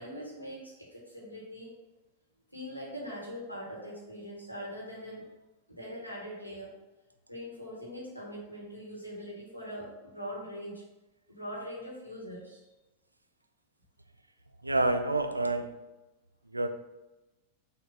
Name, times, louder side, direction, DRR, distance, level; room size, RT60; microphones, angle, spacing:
voice 1, 0.0-1.7 2.5-5.3 5.7-6.7 7.3-10.8 11.3-12.6, equal, 85° left, -4 dB, 1.8 m, -42 dB
voice 2, 14.6-15.8 16.5-16.7, right 2 dB, 85° right, 9 dB, 0.4 m, -28 dB
6.3 x 3.0 x 5.4 m, 1.1 s
figure-of-eight pair, 90°, 0 cm